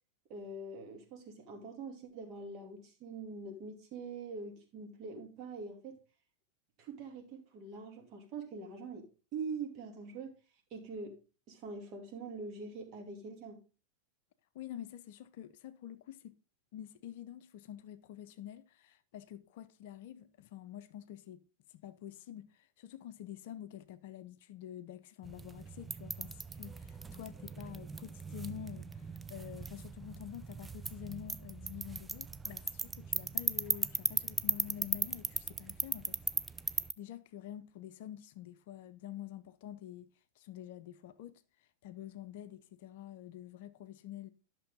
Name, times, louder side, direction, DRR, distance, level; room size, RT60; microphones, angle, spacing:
voice 1, 0.3-6.0 6.8-10.3 10.7-11.2 11.5-13.6, right 4 dB, 40° right, 2.5 m, -44 dB
voice 2, 14.5-16.4 16.7-21.4 21.7-36.2 36.7-40.1 40.4-44.3, left 11 dB, 50° left, 0.6 m, -48 dB
sound 1, 25.2-36.9, right 4 dB, 10° right, 0.4 m, -38 dB
11.0 x 6.2 x 3.7 m
figure-of-eight pair, 90°, 0 cm